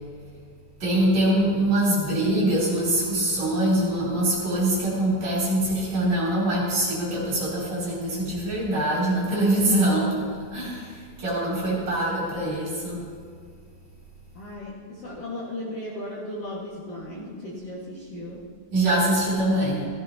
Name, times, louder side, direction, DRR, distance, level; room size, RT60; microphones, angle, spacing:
voice 1, 0.8-10.2 10.5-13.0 18.7-19.9, right 1 dB, 40° right, -6 dB, 3.7 m, -23 dB
voice 2, 14.3-18.4, left 1 dB, 70° left, -9 dB, 1.4 m, -36 dB
17.5 x 15.0 x 2.9 m, 2.1 s
omnidirectional pair, 5.9 m